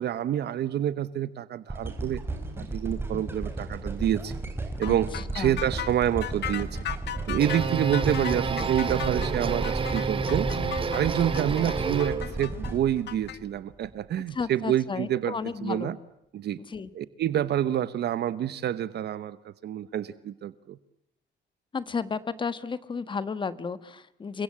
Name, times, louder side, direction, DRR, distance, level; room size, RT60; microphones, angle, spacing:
voice 1, 0.0-2.2 2.6-4.3 4.8-6.8 7.3-10.5 10.9-15.3 15.6-16.0 16.3-16.6 16.9-20.8, right 11 dB, 65° right, 15 dB, 1.1 m, -28 dB
sound 1, 1.7-13.9 14.5-14.6, right 2 dB, 10° right, 4.7 m, -34 dB
sound 2, 4.8-13.4, left 11 dB, 65° left, 1.7 m, -37 dB
sound 3, 7.1-12.3, right 4 dB, 30° right, 2.5 m, -30 dB
voice 2, 14.3-15.9 16.7-16.9 21.7-24.4, left 5 dB, 25° left, 14 dB, 1.5 m, -33 dB
29.0 x 24.0 x 8.6 m, 0.82 s
cardioid pair, 165°, 19 cm